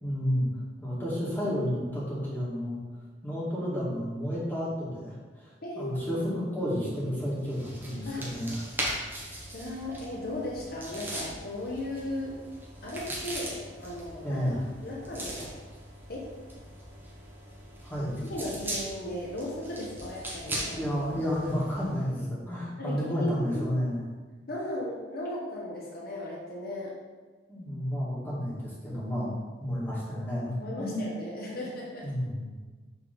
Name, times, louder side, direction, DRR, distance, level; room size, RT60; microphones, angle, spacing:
voice 1, 0.0-0.4 0.8-2.8 3.2-8.7 14.2-14.6 17.8-18.2 20.7-24.0 27.5-31.1 32.0-32.6, equal, 10° left, -7 dB, 1.8 m, -31 dB
voice 2, 5.6-6.3 8.1-8.3 9.5-12.4 12.8-15.5 16.1-16.3 18.3-20.9 22.8-23.8 24.5-26.9 30.6-32.1, left 1 dB, 50° left, -4 dB, 1.0 m, -36 dB
sound 1, 7.4-22.0, right 1 dB, 10° right, 1.1 m, -40 dB
6.4 x 3.5 x 5.1 m, 1.4 s
head